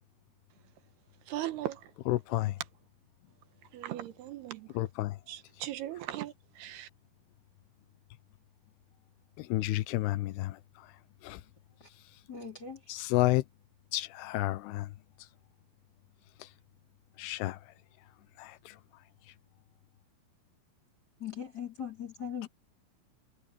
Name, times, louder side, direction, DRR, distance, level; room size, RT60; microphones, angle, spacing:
voice 1, 1.3-1.9 3.7-4.8 5.3-6.9, right 13 dB, 85° right, 3.3 m, -38 dB
voice 2, 2.1-2.6 4.8-5.2 9.4-10.9 11.2-11.4 12.9-13.4 13.9-14.9 16.4-16.5 17.2-17.6 18.4-18.8, left 17 dB, 90° left, 2.9 m, -31 dB
voice 3, 12.3-12.8 21.2-22.5, left 8 dB, 25° left, 4.0 m, -39 dB
omnidirectional pair, 4.5 m